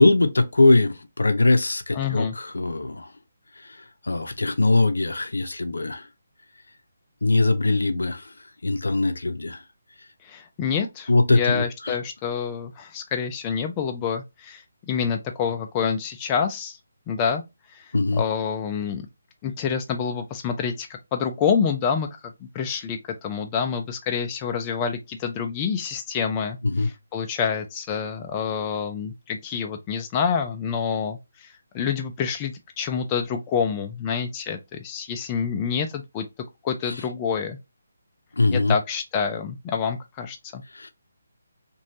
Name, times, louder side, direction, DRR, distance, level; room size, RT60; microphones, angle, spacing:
voice 1, 0.0-3.1 3.6-3.8 4.0-6.1 7.2-8.3 8.6-9.6 11.1-11.9 17.9-18.2 26.6-26.9 38.4-38.7 40.7-40.9, left 2 dB, 75° left, 0.6 m, -21 dB
voice 2, 1.9-2.3 10.2-16.8 17.1-17.4 17.7-19.1 19.4-22.1 22.5-36.2 36.6-37.6 38.5-40.6, left 6 dB, 20° left, 0.4 m, -27 dB
3.1 x 2.6 x 2.6 m
figure-of-eight pair, 150°, 0 cm